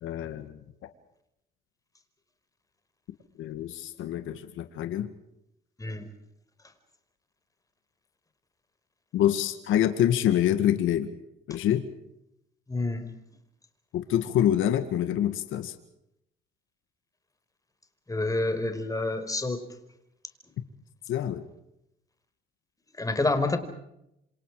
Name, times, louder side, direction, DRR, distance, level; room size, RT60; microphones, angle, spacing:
voice 1, 0.0-0.6 3.4-5.1 9.1-11.1 11.5-11.8 13.9-15.7 21.1-21.4, left 11 dB, 90° left, 9 dB, 2.0 m, -26 dB
voice 2, 12.7-13.0 18.1-19.6 23.0-23.6, left 2 dB, 15° left, 8 dB, 5.1 m, -28 dB
27.5 x 27.0 x 5.0 m, 0.80 s
cardioid pair, 90°, 20 cm